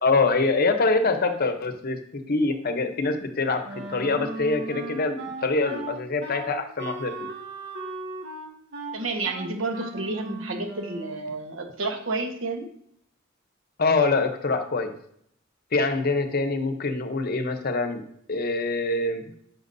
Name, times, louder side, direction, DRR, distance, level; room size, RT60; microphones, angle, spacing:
voice 1, 0.0-7.1 13.8-14.9 15.7-18.0 18.3-19.2, left 3 dB, 45° left, 8 dB, 0.7 m, -24 dB
Wind instrument woodwind instrument, 3.6-11.2, right 2 dB, 55° right, 1.6 m, -37 dB
voice 2, 8.9-12.7, right 3 dB, 70° right, 4 dB, 1.2 m, -30 dB
10.5 x 5.9 x 2.6 m, 0.69 s
head